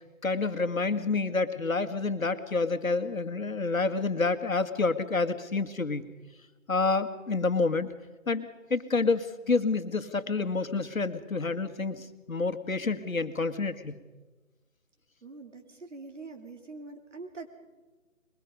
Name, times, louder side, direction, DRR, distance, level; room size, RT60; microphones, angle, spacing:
voice 1, 0.2-6.1 6.7-7.9 8.3-14.0, left 3 dB, 75° left, 9 dB, 1.9 m, -28 dB
voice 2, 15.2-17.5, right 3 dB, 60° right, 5 dB, 3.4 m, -44 dB
22.5 x 21.5 x 5.3 m, 1.2 s
figure-of-eight pair, 165°, 41 cm